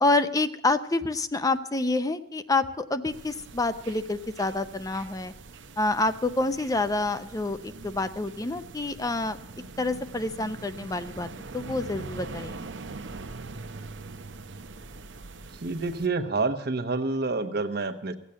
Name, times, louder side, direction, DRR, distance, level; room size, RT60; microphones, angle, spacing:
voice 1, 0.0-5.3 5.8-9.4 9.8-12.6, left 2 dB, 20° left, 11 dB, 0.6 m, -27 dB
sound 1, 3.1-16.1, right 3 dB, 75° right, 0.8 m, -43 dB
voice 2, 15.5-18.2, right 3 dB, 60° right, 6 dB, 1.1 m, -28 dB
15.5 x 8.3 x 8.5 m, 0.77 s
head